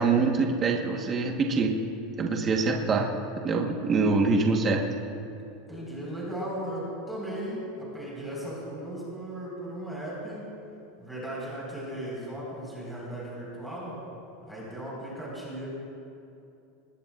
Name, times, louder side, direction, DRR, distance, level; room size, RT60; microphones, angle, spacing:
voice 1, 0.0-1.7 2.2-3.1 3.4-4.8, right 4 dB, 20° right, 1 dB, 1.2 m, -24 dB
voice 2, 5.7-10.4 11.0-14.0 14.5-15.7, right 1 dB, ahead, -7 dB, 4.3 m, -36 dB
26.0 x 20.5 x 2.4 m, 2.7 s
supercardioid pair, 175°, 0 cm